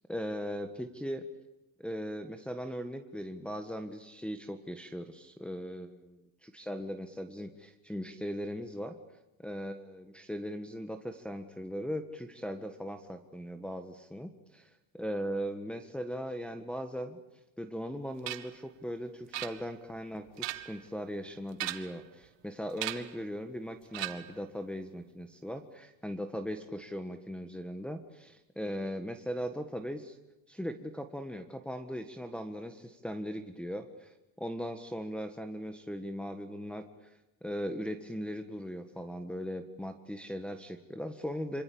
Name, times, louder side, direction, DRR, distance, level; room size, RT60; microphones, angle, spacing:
voice 1, 0.1-1.2 1.8-8.9 9.4-14.3 15.0-17.2 17.6-30.2 30.5-41.6, equal, ahead, 4 dB, 1.5 m, -39 dB
sound 1, 18.3-18.6 19.3-19.9 20.3-20.9 21.5-22.1 22.8-23.2 23.9-24.4, right 16 dB, 75° right, 1.9 m, -38 dB
26.5 x 26.0 x 8.7 m, 0.93 s
cardioid pair, 130°, 44 cm